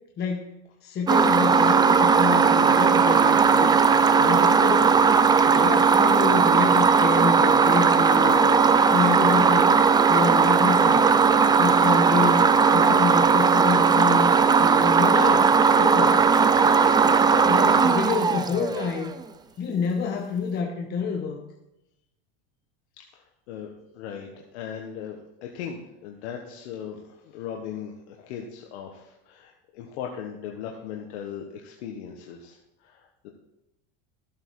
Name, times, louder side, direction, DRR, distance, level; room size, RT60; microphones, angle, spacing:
voice 1, 0.2-0.5 0.8-3.8 4.2-5.0 5.5-8.7 8.9-9.7 10.1-11.0 11.6-12.4 12.7-14.3 14.6-15.5 15.8-16.2 16.6-19.1 19.6-21.4, left 5 dB, 30° left, 1 dB, 1.2 m, -28 dB
sound 1, 1.1-19.0, right 5 dB, 15° right, 0.4 m, -18 dB
voice 2, 23.1-33.3, left 8 dB, 85° left, 1 dB, 1.5 m, -38 dB
14.0 x 7.6 x 4.8 m, 0.88 s
supercardioid pair, 140°, 32 cm